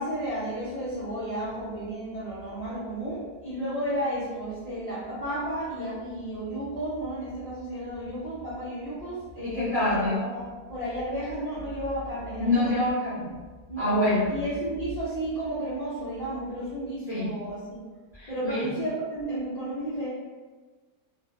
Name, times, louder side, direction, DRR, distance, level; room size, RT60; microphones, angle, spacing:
voice 1, 0.0-13.0 13.7-13.9 14.3-17.8 18.3-20.1, right 1 dB, 70° left, -11 dB, 0.3 m, -33 dB
voice 2, 9.4-10.2 12.4-13.2 13.8-14.3 17.1-17.3 18.1-18.7, left 1 dB, 10° right, -12 dB, 0.8 m, -26 dB
2.5 x 2.2 x 2.4 m, 1.3 s
omnidirectional pair, 1.6 m